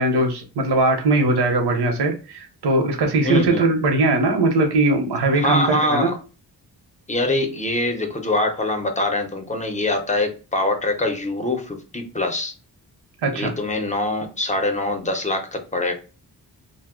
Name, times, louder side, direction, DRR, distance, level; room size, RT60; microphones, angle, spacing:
voice 1, 0.0-6.1 13.2-13.5, right 2 dB, 80° right, 3 dB, 0.8 m, -20 dB
voice 2, 3.2-3.7 5.3-6.2 7.1-12.5 13.3-15.9, left 2 dB, 20° left, 5 dB, 0.6 m, -24 dB
2.6 x 2.0 x 3.6 m, 0.34 s
wide cardioid pair, 115°, 40 cm